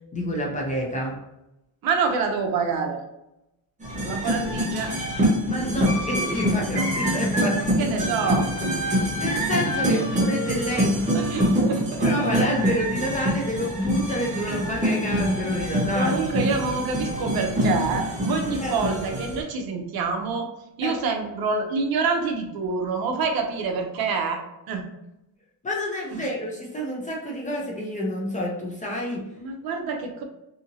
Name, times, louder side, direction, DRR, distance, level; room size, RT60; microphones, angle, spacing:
voice 1, 0.1-1.2 5.5-7.9 9.2-11.1 11.4-11.8 12.0-16.2 18.6-18.7 20.8-21.0 25.6-29.3, equal, 20° left, -2 dB, 0.4 m, -28 dB
voice 2, 1.8-3.0 4.0-5.0 7.5-8.5 11.1-12.3 15.9-20.5 20.8-24.4 24.7-24.8 26.1-26.2 29.3-30.2, right 4 dB, 60° right, 3 dB, 0.7 m, -27 dB
sound 1, 3.8-19.4, equal, 20° right, 0.8 m, -25 dB
2.7 x 2.7 x 2.6 m, 0.89 s
cardioid pair, 145°, 41 cm